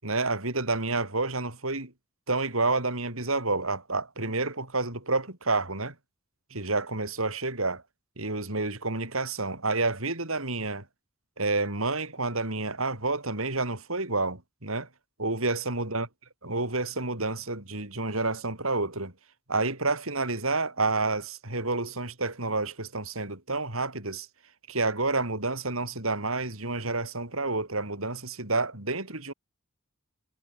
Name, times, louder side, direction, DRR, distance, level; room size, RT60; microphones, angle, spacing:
voice 1, 0.0-1.9 2.3-5.9 6.5-7.8 8.2-10.8 11.4-14.9 15.2-16.1 16.4-19.1 19.5-24.3 24.7-29.3, right 3 dB, 75° right, 6.7 m, -29 dB
head